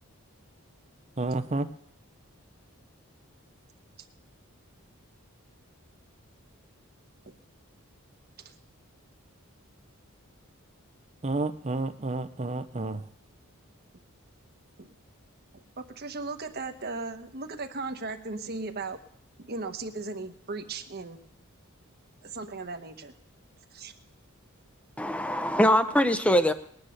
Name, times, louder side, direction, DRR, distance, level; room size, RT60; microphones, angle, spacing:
voice 1, 1.2-1.7 11.2-13.0, right 2 dB, 30° right, 10 dB, 0.7 m, -30 dB
voice 2, 15.5-19.0 19.4-21.2 22.2-23.1 23.7-23.9, right 3 dB, 45° right, 7 dB, 1.3 m, -37 dB
voice 3, 25.0-26.5, equal, 5° left, 10 dB, 0.8 m, -22 dB
20.0 x 9.9 x 6.6 m, 0.68 s
head